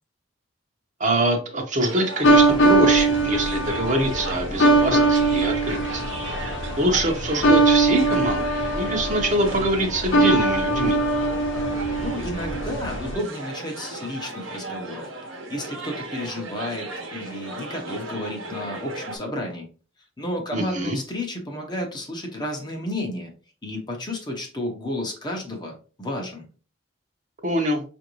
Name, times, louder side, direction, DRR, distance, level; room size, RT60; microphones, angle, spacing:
voice 1, 1.0-6.0 6.8-11.0 20.5-21.0 27.4-27.8, right 1 dB, 35° right, 3 dB, 0.8 m, -24 dB
sound 1, 1.8-19.2, right 2 dB, 80° right, 1.0 m, -36 dB
sound 2, 2.2-13.2, right 2 dB, 65° left, 0.8 m, -21 dB
voice 2, 12.0-15.1 15.5-19.7 20.2-23.3 23.6-26.4, left 1 dB, 20° left, 2 dB, 0.7 m, -32 dB
5.7 x 2.6 x 3.0 m, 0.37 s
head